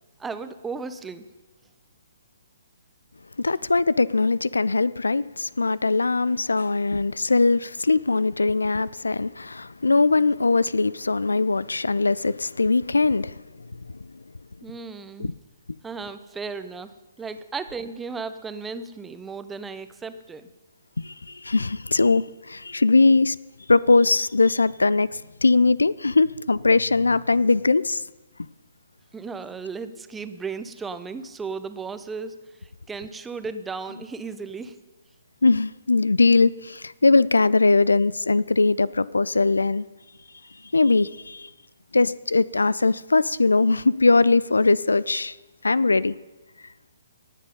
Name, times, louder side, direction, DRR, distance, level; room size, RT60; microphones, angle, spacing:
voice 1, 0.2-1.2 14.6-15.3 15.8-16.9 17.2-20.5 29.1-34.8, right 4 dB, 10° right, 0.6 m, -35 dB
voice 2, 3.4-13.4 15.2-15.3 21.0-23.4 23.7-28.0 35.4-39.8 40.7-41.5 41.9-45.4 45.6-46.1, left 3 dB, 75° left, 0.3 m, -21 dB
18.5 x 7.5 x 5.2 m
figure-of-eight pair, 130°, 0 cm